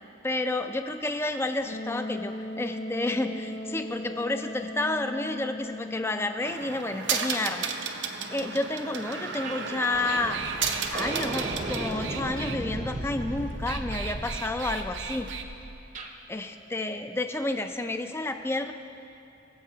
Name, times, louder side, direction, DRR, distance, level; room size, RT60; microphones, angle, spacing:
voice 1, 0.2-7.7 8.3-10.4 10.9-15.3 16.3-18.7, left 2 dB, 15° left, 7 dB, 0.4 m, -30 dB
Wind instrument woodwind instrument, 1.7-6.5, left 1 dB, 75° left, 0.8 m, -37 dB
sound 1, 6.4-12.6 13.5-15.4, right 6 dB, 80° right, 0.7 m, -33 dB
sound 2, 9.4-9.6 9.9-16.1, right 1 dB, 45° right, 0.8 m, -36 dB
22.5 x 7.6 x 2.8 m, 2.7 s
head